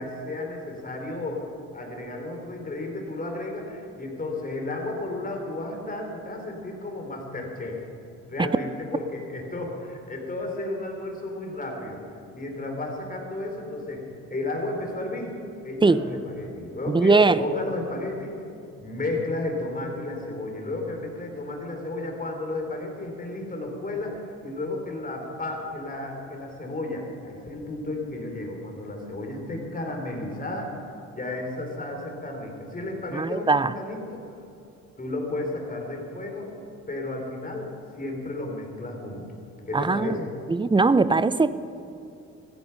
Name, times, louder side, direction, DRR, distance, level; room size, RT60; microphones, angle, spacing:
voice 1, 0.0-7.8 8.3-12.0 12.3-15.3 15.6-18.4 18.8-30.8 31.1-34.2 35.0-36.5 36.9-37.7 38.0-39.4 39.7-40.3, left 2 dB, 30° left, 1 dB, 3.8 m, -33 dB
voice 2, 16.9-17.4 33.1-33.7 39.7-40.2 40.5-41.5, right 3 dB, 15° right, 15 dB, 0.5 m, -20 dB
16.0 x 14.0 x 5.9 m, 2.7 s
cardioid pair, 90°, 30 cm